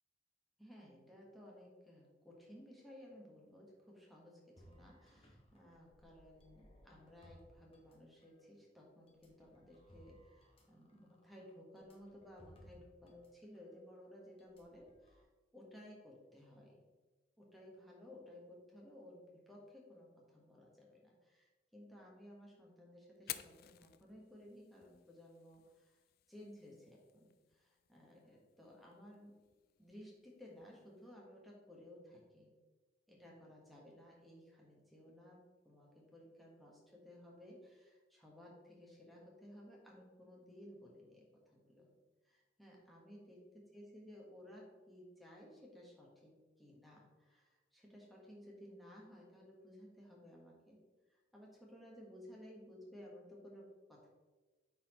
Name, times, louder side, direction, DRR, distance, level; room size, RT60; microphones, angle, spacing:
voice 1, 0.6-15.2 15.5-16.8 17.4-26.0 26.3-29.4 29.8-32.5 33.1-41.9 42.2-50.8 51.1-54.1, left 1 dB, ahead, -3 dB, 1.4 m, -57 dB
sound 1, 4.6-8.4 9.1-13.3 13.6-13.7 14.4-15.2, equal, 30° left, 1.0 m, -64 dB
Fire, 23.1-31.1, left 13 dB, 55° left, 0.3 m, -55 dB
9.1 x 4.3 x 3.1 m, 1.3 s
head